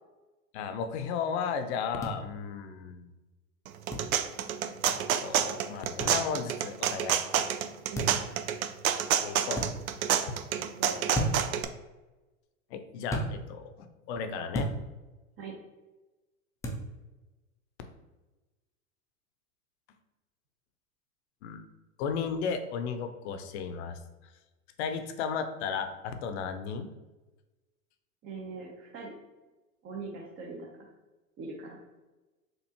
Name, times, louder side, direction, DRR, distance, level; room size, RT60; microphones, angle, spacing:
voice 1, 0.5-3.1 4.8-7.2 9.2-9.7 10.3-10.4 12.7-14.7 21.4-21.6 22.0-24.0 24.8-26.9, left 6 dB, 50° left, 8 dB, 0.6 m, -34 dB
sound 1, 2.0-2.2 3.9-4.1 6.0-6.2 7.9-8.3 9.5-9.7 11.1-11.5 13.1-13.3 14.5-14.8 16.6-16.8, right 1 dB, 10° left, 0.4 m, -31 dB
sound 2, 3.7-11.6, right 9 dB, 75° right, 0.5 m, -28 dB
voice 2, 10.6-11.0 15.4-15.5 28.2-29.1 29.8-30.7 31.4-31.8, right 4 dB, 30° right, -2 dB, 0.8 m, -41 dB
4.3 x 2.6 x 2.9 m, 1.1 s
hypercardioid pair, 95°, 42 cm